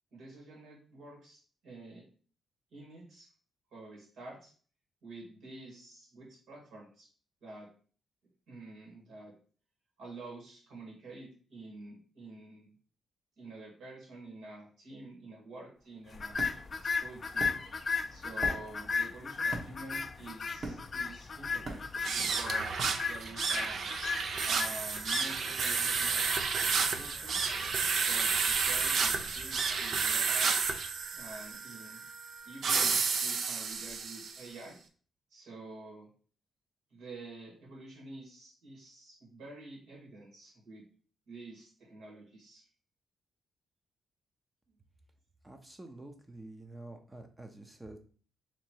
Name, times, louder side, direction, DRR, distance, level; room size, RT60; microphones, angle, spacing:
voice 1, 0.1-2.0 2.7-3.3 3.7-4.5 5.0-7.1 7.4-7.7 8.5-9.3 10.0-12.7 13.4-16.4 16.8-17.6 18.1-21.9 22.1-23.8 24.4-26.3 26.7-27.4 28.0-30.5 30.9-32.0 32.5-34.8 35.3-36.1 36.9-40.8 41.3-42.6, right 2 dB, 85° right, -2 dB, 1.9 m, -49 dB
sound 1, 15.8-23.9, right 2 dB, 35° right, 1.1 m, -43 dB
sound 2, 16.1-30.5, left 5 dB, 40° left, 0.3 m, -37 dB
sound 3, 22.0-34.5, right 5 dB, 60° right, 0.5 m, -31 dB
voice 2, 45.4-48.0, right 2 dB, 15° right, 5 dB, 0.6 m, -48 dB
3.1 x 2.9 x 4.5 m, 0.42 s
cardioid pair, 115°, 0 cm